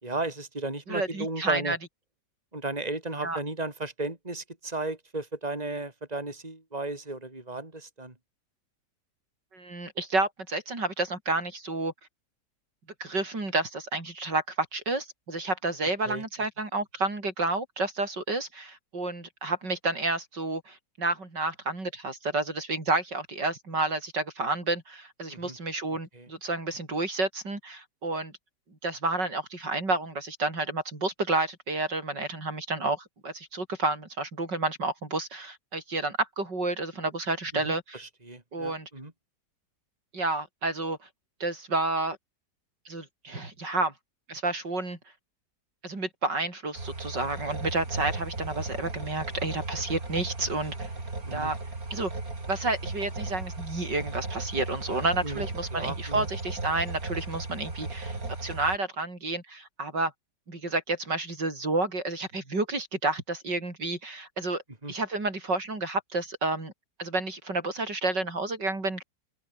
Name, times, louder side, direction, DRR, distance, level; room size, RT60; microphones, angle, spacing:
voice 1, 0.0-1.8 2.5-8.1 16.1-16.2 25.3-25.6 26.1-26.3 37.6-39.1 51.2-51.5 54.9-55.4 55.7-56.3 64.8-64.9, right 2 dB, 20° right, 4.4 m, -35 dB
voice 2, 0.9-1.8 3.2-3.4 9.5-11.9 13.0-28.3 28.8-38.0 38.5-38.9 40.1-41.0 41.4-42.2 42.9-43.9 44.3-45.0 45.8-50.9 51.3-51.6 51.9-52.1 52.5-60.1 60.5-64.6 64.9-66.7 67.0-69.0, right 2 dB, 80° right, 6.6 m, -30 dB
sound 1, 46.7-58.8, right 3 dB, 55° right, 5.0 m, -36 dB
omnidirectional pair, 1.9 m